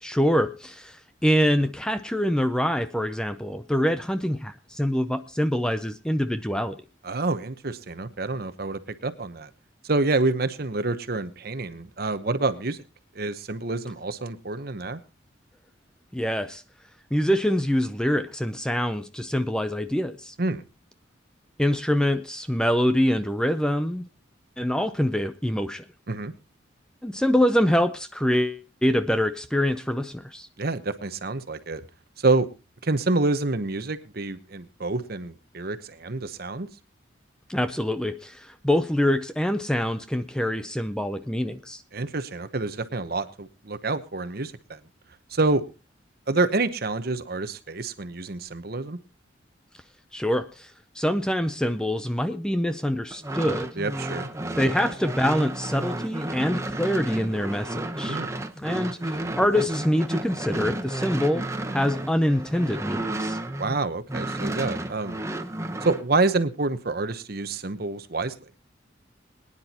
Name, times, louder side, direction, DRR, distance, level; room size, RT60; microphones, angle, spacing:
voice 1, 0.0-6.8 16.1-16.6 17.1-20.3 21.6-24.0 24.6-25.8 27.0-30.5 37.5-41.8 50.1-50.7 51.0-53.7 54.5-58.2 58.6-61.4 61.7-63.4, equal, 5° left, 10 dB, 0.5 m, -25 dB
voice 2, 7.0-9.5 9.8-12.8 13.2-15.0 20.4-20.6 26.1-26.3 30.6-31.8 32.2-32.5 32.8-36.7 41.9-44.8 45.3-45.6 46.3-49.0 53.8-54.3 58.0-58.4 63.6-65.2 65.8-68.3, right 3 dB, 50° right, 11 dB, 1.0 m, -27 dB
sound 1, 53.1-63.8 64.1-66.0, right 1 dB, 15° right, 0.9 m, -32 dB
23.0 x 10.0 x 2.9 m, 0.30 s
head